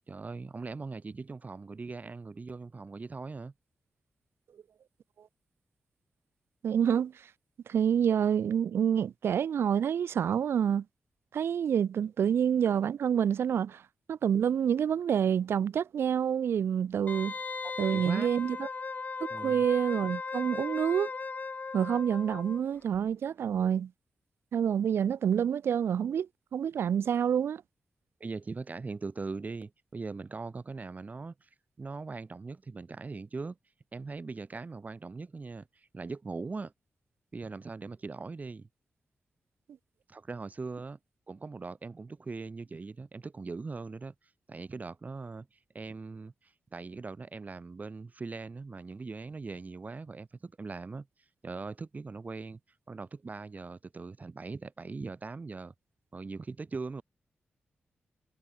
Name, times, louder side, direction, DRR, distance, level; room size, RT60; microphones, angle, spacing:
voice 1, 0.1-3.5 12.2-12.3 17.6-18.3 19.3-19.6 28.2-31.5 31.8-33.6 33.9-36.7 37.3-38.7 40.1-41.0 41.3-44.1 44.5-51.1 51.4-52.6 52.9-55.7 56.1-57.0, right 4 dB, 40° right, 7.3 m, -40 dB
voice 2, 6.6-7.1 7.7-10.8 11.3-13.8 14.1-17.3 17.8-18.7 19.2-21.1 21.7-23.9 24.5-27.6, right 8 dB, 80° right, 1.1 m, -27 dB
Wind instrument woodwind instrument, 17.1-22.6 22.9-23.0, left 4 dB, 45° left, 3.3 m, -37 dB
cardioid pair, 70°, 4 cm